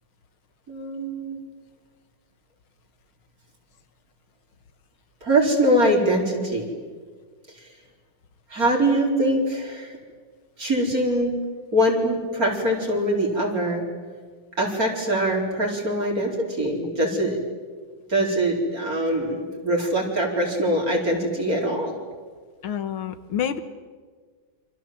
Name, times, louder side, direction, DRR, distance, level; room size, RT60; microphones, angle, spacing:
voice 1, 0.7-1.4 5.2-6.7 8.5-9.9 10.6-11.3 11.7-13.9 14.6-17.4 18.1-21.9, right 1 dB, 40° right, -1 dB, 4.9 m, -23 dB
voice 2, 22.6-23.6, left 9 dB, 75° left, 11 dB, 2.1 m, -28 dB
29.5 x 25.5 x 7.7 m, 1.5 s
omnidirectional pair, 2.3 m